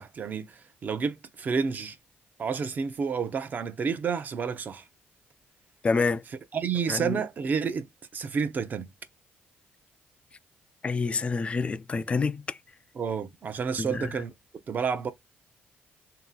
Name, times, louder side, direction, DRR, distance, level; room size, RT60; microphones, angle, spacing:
voice 1, 0.0-2.0 2.4-4.8 6.5-8.9 12.9-14.3 14.7-15.1, right 6 dB, 45° right, 0.7 m, -30 dB
voice 2, 5.8-6.2 6.9-7.2 10.8-12.6 13.8-14.1, left 4 dB, 30° left, 0.4 m, -27 dB
3.1 x 3.0 x 3.7 m
cardioid pair, 115°, 4 cm